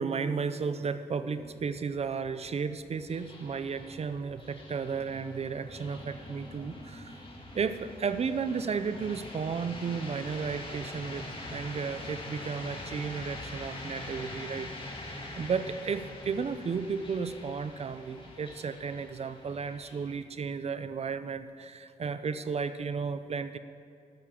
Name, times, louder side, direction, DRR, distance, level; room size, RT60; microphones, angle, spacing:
voice 1, 0.0-7.2 7.5-14.7 15.3-23.6, right 5 dB, 45° right, 11 dB, 0.5 m, -33 dB
sound 1, 1.2-20.1, left 1 dB, 35° left, 2.0 m, -44 dB
12.5 x 6.7 x 7.3 m, 2.5 s
cardioid pair, 95°, 15 cm